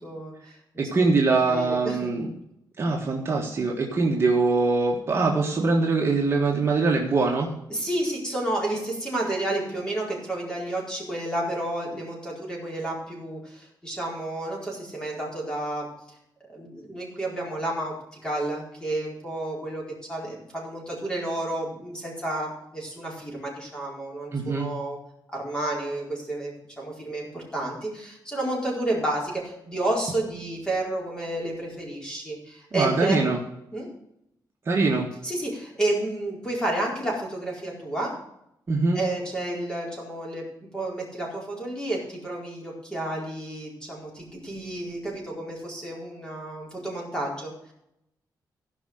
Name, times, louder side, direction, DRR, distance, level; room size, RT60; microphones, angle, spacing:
voice 1, 0.0-1.0 1.5-2.1 7.7-15.9 16.5-17.9 18.2-19.8 20.1-25.0 25.3-33.2 33.7-33.9 35.2-38.1 38.9-40.4 40.7-47.7, right 1 dB, 10° left, -3 dB, 4.6 m, -31 dB
voice 2, 0.8-2.3 2.8-7.5 24.3-24.7 32.7-33.4 34.7-35.1 38.7-39.0, right 3 dB, 35° right, -1 dB, 1.6 m, -23 dB
16.0 x 5.6 x 6.4 m, 0.79 s
wide cardioid pair, 150°, 7 cm